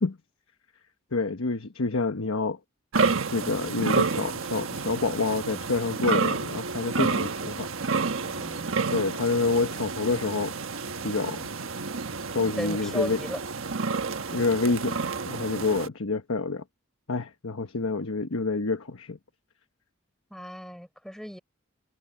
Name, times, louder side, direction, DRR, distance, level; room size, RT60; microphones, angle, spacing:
voice 1, 1.1-2.6 3.3-7.7 8.9-10.5 11.0-11.5 12.3-13.2 14.3-15.0 15.3-16.6 17.1-19.2, left 3 dB, 85° left, 1.1 m, -27 dB
sound 1, 2.9-15.9, right 4 dB, 75° right, 1.4 m, -30 dB
voice 2, 8.2-9.3 12.4-13.4 20.3-21.4, equal, ahead, 6.1 m, -36 dB
head